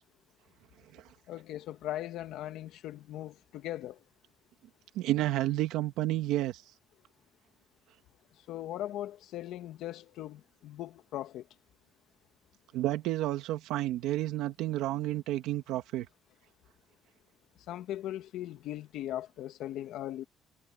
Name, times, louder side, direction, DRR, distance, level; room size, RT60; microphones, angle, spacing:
voice 1, 1.3-4.0 8.5-11.5 17.7-20.2, left 13 dB, 70° left, 1.8 m, -39 dB
voice 2, 4.9-6.6 12.7-16.1, right 15 dB, 90° right, 1.8 m, -31 dB
cardioid pair, 165°, 0 cm